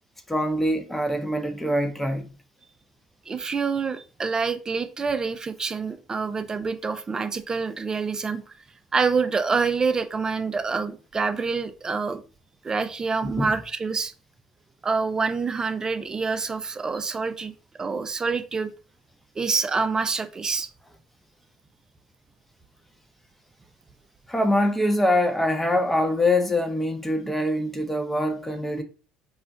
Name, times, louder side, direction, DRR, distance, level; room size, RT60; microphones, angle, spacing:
voice 1, 0.3-2.3 13.2-13.5 24.3-28.8, left 1 dB, 10° left, 0.7 m, -24 dB
voice 2, 3.3-8.4 8.9-12.2 12.6-14.1 14.8-17.5 17.8-18.7 19.4-20.7, right 4 dB, 25° right, 0.4 m, -26 dB
2.4 x 2.1 x 3.9 m
hypercardioid pair, 70°, 3 cm